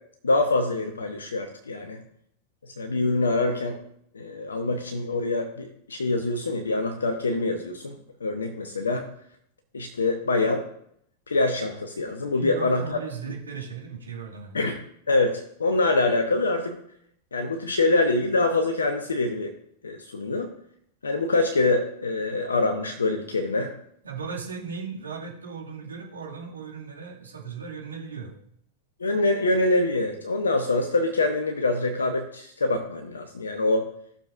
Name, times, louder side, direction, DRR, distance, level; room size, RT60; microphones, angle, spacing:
voice 1, 0.2-2.0 2.6-3.8 4.1-9.1 9.7-10.6 11.3-12.8 14.5-14.8 15.1-16.8 17.3-19.5 19.8-20.5 21.0-23.7 29.0-33.9, left 2 dB, 75° left, 5 dB, 0.9 m, -25 dB
voice 2, 12.3-14.6 24.0-28.3, right 5 dB, 75° right, -2 dB, 2.1 m, -37 dB
15.5 x 6.7 x 2.5 m, 0.70 s
figure-of-eight pair, 90°, 0 cm